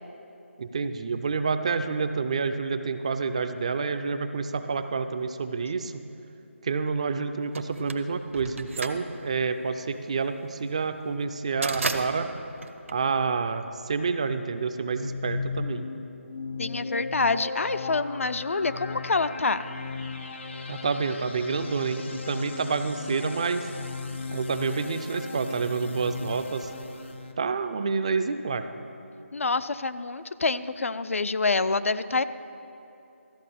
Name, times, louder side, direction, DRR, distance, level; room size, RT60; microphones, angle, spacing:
voice 1, 0.6-6.0 6.6-12.3 12.9-15.9 20.7-23.7 24.3-26.7 27.4-28.7, right 4 dB, 30° right, 9 dB, 0.3 m, -28 dB
sound 1, 7.6-13.7, right 3 dB, 65° right, 0.7 m, -35 dB
sound 2, 14.8-27.3, left 4 dB, 55° left, 0.8 m, -37 dB
voice 2, 16.6-19.6 29.3-32.2, left 3 dB, 75° left, 13 dB, 0.4 m, -26 dB
13.0 x 5.2 x 6.8 m, 2.8 s
figure-of-eight pair, 160°, 7 cm